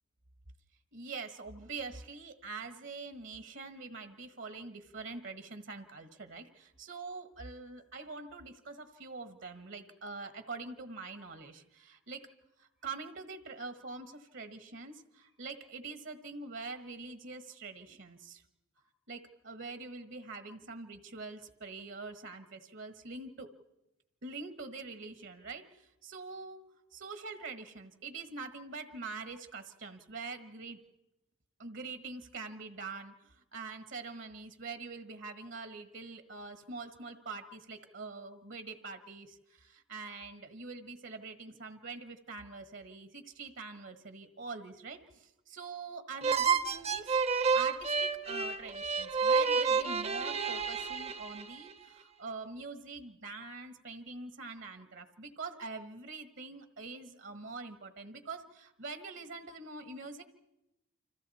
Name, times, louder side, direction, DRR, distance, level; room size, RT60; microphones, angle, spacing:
voice 1, 0.9-12.3 12.6-18.4 19.1-23.5 24.2-26.6 26.9-30.8 31.6-60.2, right 4 dB, 65° right, 9 dB, 1.3 m, -44 dB
sound 1, 46.2-51.7, right 5 dB, 30° right, 0.7 m, -30 dB
29.5 x 26.0 x 4.2 m, 0.93 s
head